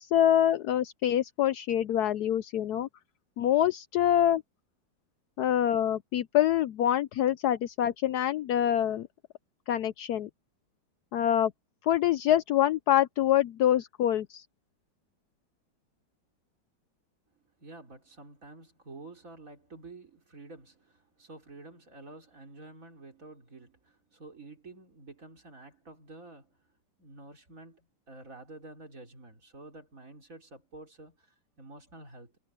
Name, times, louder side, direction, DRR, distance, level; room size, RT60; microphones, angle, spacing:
voice 1, 0.0-2.9 3.4-4.4 5.4-9.1 9.7-10.3 11.1-11.5 11.8-14.4, left 11 dB, 70° left, 1.0 m, -25 dB
voice 2, 17.6-26.6 27.0-32.3, right 2 dB, 45° right, 4.1 m, -49 dB
omnidirectional pair, 2.0 m